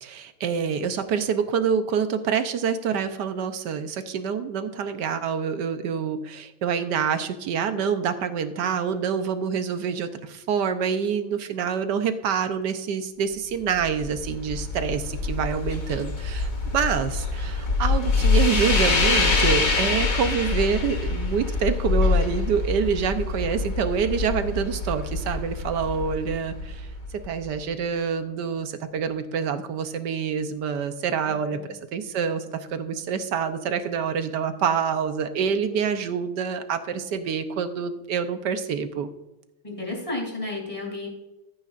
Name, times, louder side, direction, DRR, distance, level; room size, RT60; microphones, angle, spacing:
voice 1, 0.0-26.9 27.2-39.1, right 6 dB, 65° right, 9 dB, 1.3 m, -26 dB
sound 1, 13.5-27.6, left 4 dB, 45° left, 1.9 m, -25 dB
voice 2, 39.6-41.1, left 2 dB, 15° left, -1 dB, 3.3 m, -32 dB
14.0 x 9.1 x 2.5 m, 0.96 s
omnidirectional pair, 2.2 m